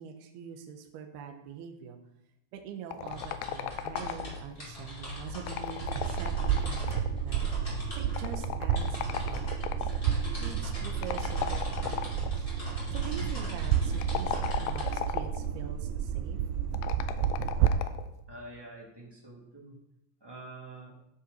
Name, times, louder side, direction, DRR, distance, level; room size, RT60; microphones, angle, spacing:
voice 1, 0.0-2.0 2.5-7.5 7.9-9.0 9.3-9.9 10.4-12.5 12.9-16.4, right 7 dB, 70° right, 4 dB, 3.0 m, -44 dB
sound 1, 2.9-4.5 5.3-7.2 8.2-10.0 11.0-12.3 13.9-15.5 16.7-18.1, left 11 dB, 80° left, 2.8 m, -36 dB
sound 2, 3.0-14.9, equal, 15° left, 6.1 m, -40 dB
sound 3, 5.8-17.7, right 9 dB, 90° right, 3.0 m, -31 dB
voice 2, 18.3-19.8 20.2-21.0, right 2 dB, 5° right, -3 dB, 2.9 m, -46 dB
13.5 x 11.5 x 4.6 m, 0.80 s
omnidirectional pair, 5.2 m